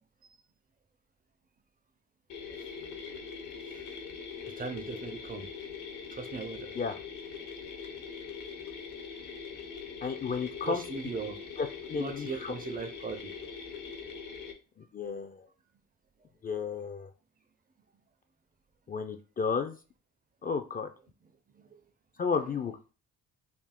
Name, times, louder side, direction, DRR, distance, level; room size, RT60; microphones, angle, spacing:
sound 1, 2.3-14.5, left 6 dB, 80° left, 0.9 m, -42 dB
voice 1, 4.6-5.5 6.1-6.7 10.7-11.4 12.0-13.3 21.5-21.8 22.4-22.5, right 4 dB, 30° right, 0.5 m, -39 dB
voice 2, 10.0-10.8 11.6-12.5 14.9-15.5 16.4-17.1 18.9-19.8 20.4-20.9 22.2-22.9, left 5 dB, 30° left, 0.4 m, -33 dB
3.5 x 2.4 x 3.6 m
cardioid pair, 90°, 30 cm